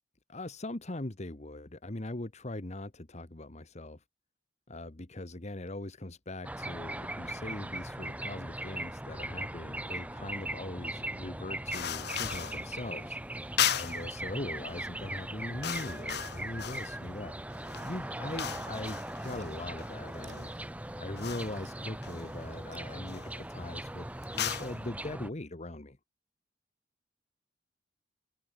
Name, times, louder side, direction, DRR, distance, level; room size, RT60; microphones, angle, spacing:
voice 1, 0.3-4.0 4.7-13.2 13.7-17.3 17.8-20.5 21.0-26.0, left 1 dB, 40° left, 1.4 m, -41 dB
Summer Dawn Birds Phoenix Arizona, 6.4-25.3, right 1 dB, 10° right, 1.2 m, -39 dB
sound 1, 11.7-12.7 13.6-14.1 14.9-15.1 15.4-17.0 17.5-20.5 21.2-21.6 22.0-22.6 23.0-23.4 24.2-24.8, left 10 dB, 65° left, 1.4 m, -36 dB
sound 2, 19.1-22.0 22.3-23.8, right 6 dB, 70° right, 6.8 m, -61 dB
head